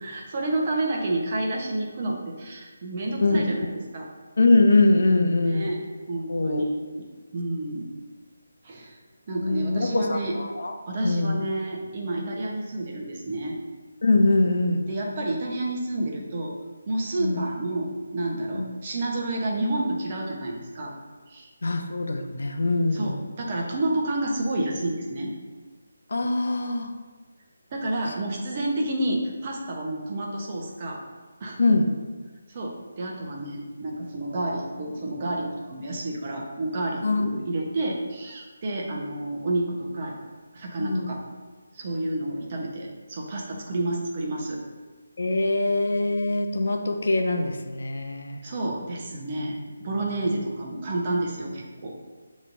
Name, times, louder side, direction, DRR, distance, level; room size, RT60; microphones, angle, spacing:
voice 1, 0.0-4.1 5.4-5.8 6.1-7.0 7.3-7.9 8.6-9.0 9.3-10.3 10.9-13.6 14.9-16.5 16.9-20.9 21.3-21.5 22.9-25.3 27.7-31.0 31.4-31.6 32.5-40.2 40.5-41.2 41.7-44.6 48.4-51.9, right 1 dB, 35° right, -1 dB, 0.9 m, -30 dB
voice 2, 4.4-5.7 6.3-6.6 9.3-10.7 11.0-11.4 14.0-14.8 17.2-17.4 18.6-18.7 21.6-23.1 26.1-26.9 31.6-31.9 37.0-37.3 40.8-41.1 45.2-48.4, left 2 dB, 65° left, 4 dB, 0.5 m, -23 dB
6.6 x 3.1 x 2.6 m, 1.4 s
figure-of-eight pair, 155°, 0 cm